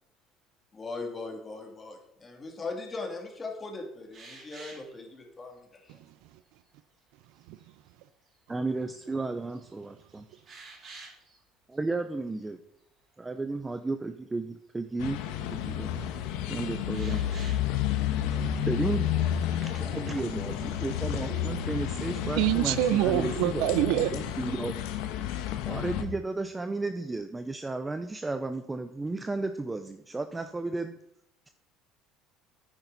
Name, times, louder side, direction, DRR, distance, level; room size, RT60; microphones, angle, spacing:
voice 1, 0.7-6.0, left 3 dB, 20° left, 2.5 m, -39 dB
sound 1, 4.1-4.9 5.6-5.7 6.2-6.7 7.3-7.7 8.3-8.4 8.8-9.3 9.5-11.4 11.7-12.0 12.3-12.4 16.9-17.7 18.7-19.3, right 3 dB, 35° right, 4.1 m, -50 dB
voice 2, 5.9-6.4 7.4-7.7 21.3-24.4, right 14 dB, 75° right, 0.6 m, -28 dB
voice 3, 8.5-10.2 11.7-12.6 13.2-15.2 15.5-16.0 16.5-17.3 18.3-18.4 18.7-19.1 19.4-23.7 24.1-24.8 25.6-31.0, right 3 dB, 15° right, 0.5 m, -33 dB
sound 2, 15.0-26.0, left 10 dB, 80° left, 1.1 m, -31 dB
9.9 x 9.0 x 4.0 m
cardioid pair, 125°, 0 cm